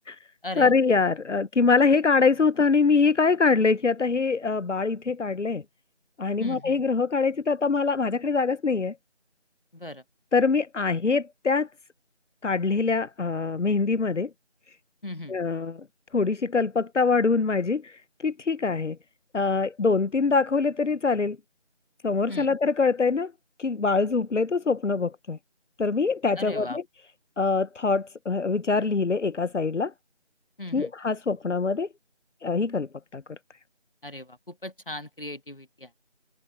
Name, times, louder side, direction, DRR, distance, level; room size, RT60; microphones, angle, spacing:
voice 1, 0.6-5.6 6.2-8.9 10.3-11.7 12.4-14.3 15.3-15.8 16.1-17.9 18.2-19.0 19.3-21.4 22.0-23.3 23.6-25.4 25.8-26.8 27.4-29.9 30.7-31.9 32.4-32.9 33.1-33.2, left 4 dB, 85° left, 0.8 m, -24 dB
voice 2, 6.4-6.8 9.7-10.0 15.0-15.3 22.3-22.5 26.4-26.8 30.6-30.9 34.0-35.9, left 1 dB, 50° left, 1.4 m, -37 dB
figure-of-eight pair, 180°, 35 cm